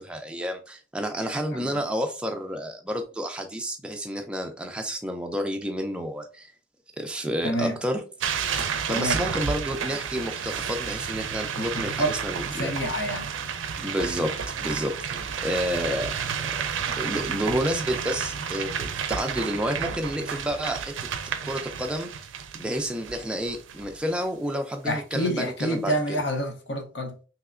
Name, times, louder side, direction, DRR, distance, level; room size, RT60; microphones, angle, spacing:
voice 1, 0.0-6.5 7.0-8.0 8.5-12.7 13.8-16.2 16.4-16.6 16.9-21.1 21.4-22.1 22.6-26.2, equal, 5° right, 0.3 m, -30 dB
voice 2, 7.4-7.8 8.9-9.2 11.6-12.1 12.6-13.3 24.8-27.2, equal, 70° left, 0.6 m, -28 dB
sound 1, 8.2-24.1, right 7 dB, 85° right, 0.4 m, -31 dB
3.2 x 2.8 x 2.4 m
head